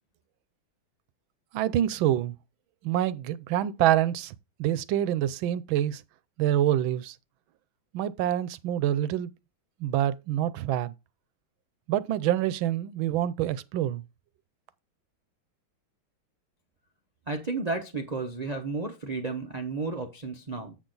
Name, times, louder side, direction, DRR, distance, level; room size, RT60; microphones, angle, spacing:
voice 1, 1.5-2.4 2.8-6.0 6.4-7.1 7.9-9.3 9.8-10.9 11.9-14.0, right 12 dB, 80° right, 1.4 m, -26 dB
voice 2, 17.3-20.8, right 3 dB, 50° right, 0.4 m, -32 dB
8.2 x 6.3 x 3.9 m
omnidirectional pair, 2.2 m